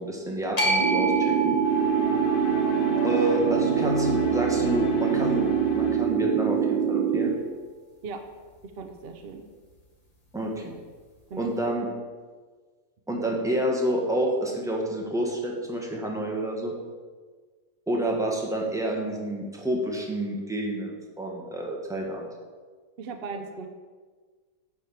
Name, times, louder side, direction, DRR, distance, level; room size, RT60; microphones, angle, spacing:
voice 1, 0.0-1.6 3.0-7.4 10.3-10.8 11.4-11.9 13.1-16.7 17.9-22.3, right 1 dB, ahead, -1 dB, 1.4 m, -29 dB
sound 1, 0.6-6.8, right 3 dB, 25° left, 1.8 m, -31 dB
sound 2, 0.8-7.3, right 8 dB, 75° right, 0.4 m, -24 dB
sound 3, 1.6-6.3, left 4 dB, 45° left, 0.8 m, -33 dB
voice 2, 8.6-9.5 11.3-11.6 23.0-23.7, right 4 dB, 50° right, 5 dB, 0.9 m, -38 dB
9.4 x 4.9 x 7.4 m, 1.5 s
omnidirectional pair, 1.5 m